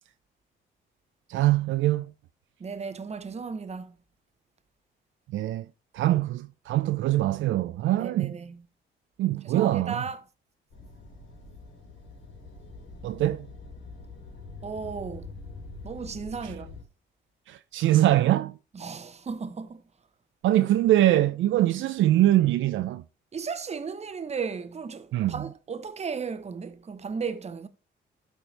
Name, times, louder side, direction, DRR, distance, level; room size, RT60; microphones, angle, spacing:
voice 1, 1.3-2.1 5.3-5.7 5.9-8.3 9.2-10.0 13.0-13.5 17.5-18.6 20.4-23.0 25.1-25.4, right 14 dB, 75° right, 0.5 m, -23 dB
voice 2, 2.6-3.9 8.0-8.6 9.4-10.2 14.6-15.3 15.8-16.8 18.7-19.8 23.3-27.7, right 5 dB, 35° right, 0.9 m, -35 dB
sound 1, 10.7-16.8, left 3 dB, 90° left, 2.7 m, -44 dB
12.5 x 4.3 x 3.3 m
cardioid pair, 90°, 20 cm